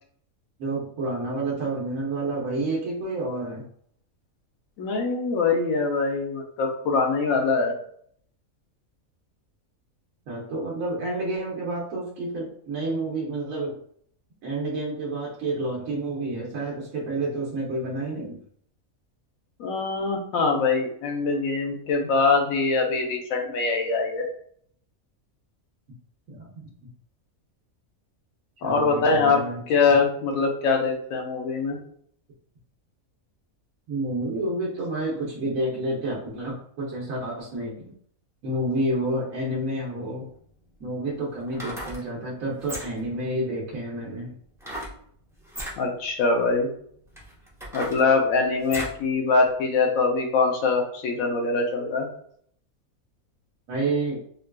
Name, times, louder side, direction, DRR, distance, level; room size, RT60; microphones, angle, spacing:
voice 1, 0.6-3.6 10.3-13.7 14.4-18.4 26.3-26.5 28.6-29.6 29.8-30.0 33.9-37.7 38.4-40.2 40.8-44.3 53.7-54.2, right 2 dB, 70° right, -5 dB, 1.1 m, -29 dB
voice 2, 4.8-7.7 19.6-24.3 28.6-29.4 29.7-31.8 45.8-46.7 47.7-52.1, left 4 dB, 75° left, 3 dB, 1.1 m, -23 dB
sound 1, 40.3-40.4 41.4-42.0 42.6-43.1 44.6-45.0 45.4-45.8 46.5-46.6 47.1-49.0 49.5-49.6, equal, 5° right, 0.3 m, -36 dB
3.7 x 2.3 x 2.2 m, 0.63 s
omnidirectional pair, 1.5 m